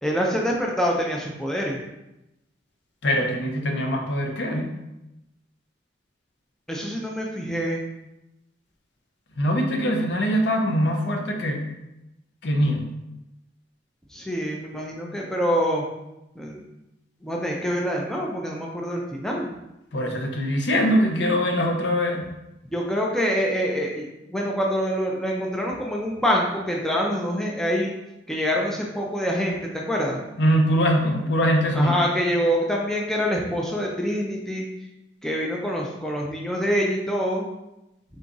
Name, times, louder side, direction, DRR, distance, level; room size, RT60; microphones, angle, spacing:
voice 1, 0.0-1.8 6.7-7.8 14.1-15.8 16.4-16.6 17.2-19.5 22.7-24.1 24.3-27.9 28.3-29.6 29.9-30.2 31.7-34.6 35.2-37.4, equal, 5° left, -2 dB, 0.4 m, -25 dB
voice 2, 3.0-4.7 9.4-11.7 12.4-12.9 19.9-22.3 30.4-32.0, equal, 65° left, 2 dB, 0.6 m, -22 dB
3.9 x 2.4 x 3.8 m, 0.91 s
head